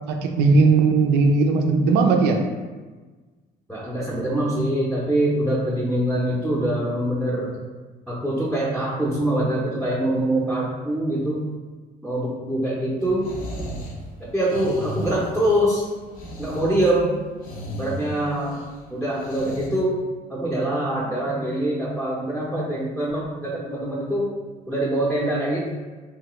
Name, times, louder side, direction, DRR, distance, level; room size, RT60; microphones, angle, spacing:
voice 1, 0.1-2.4, right 4 dB, 85° right, 4 dB, 0.4 m, -18 dB
voice 2, 3.7-7.6 8.1-11.5 12.0-13.3 14.2-15.8 16.4-17.2 17.8-18.6 18.9-20.0 20.3-24.3 24.7-25.7, right 1 dB, 5° left, -7 dB, 0.6 m, -24 dB
sound 1, 13.0-19.7, equal, 55° left, 0.6 m, -35 dB
3.1 x 2.2 x 3.0 m, 1.3 s
cardioid pair, 110°, 17 cm